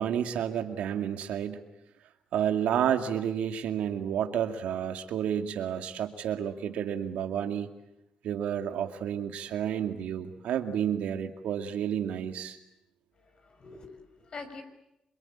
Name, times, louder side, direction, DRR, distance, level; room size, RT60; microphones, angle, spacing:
voice 1, 0.0-1.7 2.3-7.7 8.2-12.6, right 9 dB, 80° right, 6 dB, 2.3 m, -30 dB
voice 2, 13.2-14.6, left 4 dB, 45° left, 7 dB, 5.9 m, -45 dB
27.5 x 23.5 x 8.8 m, 0.86 s
cardioid pair, 85°, 2 cm